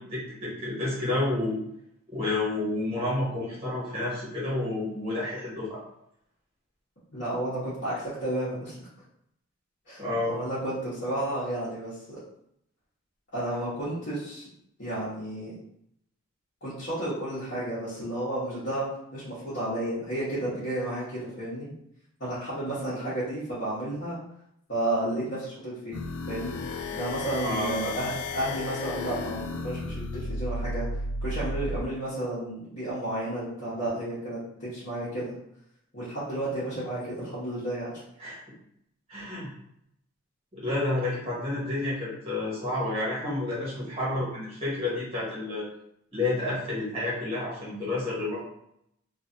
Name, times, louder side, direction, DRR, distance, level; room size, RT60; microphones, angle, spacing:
voice 1, 0.0-1.6 2.1-5.8 10.0-10.4 27.4-27.9 38.2-38.4 39.1-39.5 40.5-45.7 46.1-48.4, left 2 dB, 25° right, -7 dB, 1.2 m, -30 dB
voice 2, 7.1-8.9 9.9-10.0 10.3-12.2 13.3-14.5 14.8-15.5 16.6-18.8 19.1-21.7 22.2-24.2 24.7-26.0 26.3-26.6 26.9-35.3 35.9-38.0, right 1 dB, 50° left, -13 dB, 1.1 m, -32 dB
sound 1, 25.9-31.8, left 2 dB, 90° left, 0.3 m, -33 dB
3.1 x 2.5 x 2.7 m, 0.76 s
head